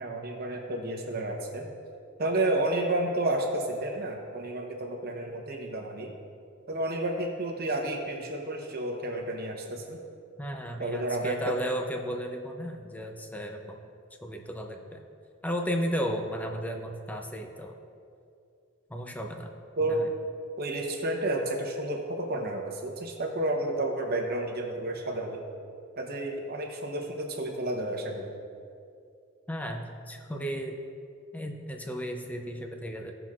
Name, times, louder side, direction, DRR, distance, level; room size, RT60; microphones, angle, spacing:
voice 1, 0.0-1.7 2.2-6.1 6.7-10.0 10.8-11.5 19.8-20.0 20.6-25.4 26.0-28.3, right 1 dB, 50° right, 1 dB, 0.9 m, -31 dB
voice 2, 10.4-13.8 14.2-15.0 15.4-17.7 18.9-19.5 20.0-20.1 29.5-30.8 31.3-33.1, equal, 10° left, 3 dB, 0.5 m, -34 dB
16.5 x 5.9 x 2.4 m, 2.4 s
head